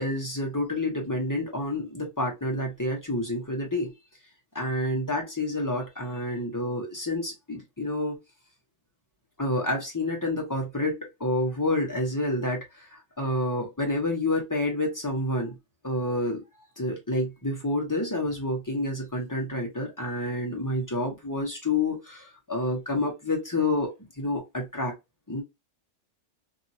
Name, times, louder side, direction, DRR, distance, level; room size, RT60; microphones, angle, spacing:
voice 1, 0.0-3.9 4.5-8.2 9.4-15.6 15.8-16.4 16.8-24.9 25.3-25.4, left 1 dB, 15° left, 0.9 m, -29 dB
2.9 x 2.7 x 2.6 m
omnidirectional pair, 1.2 m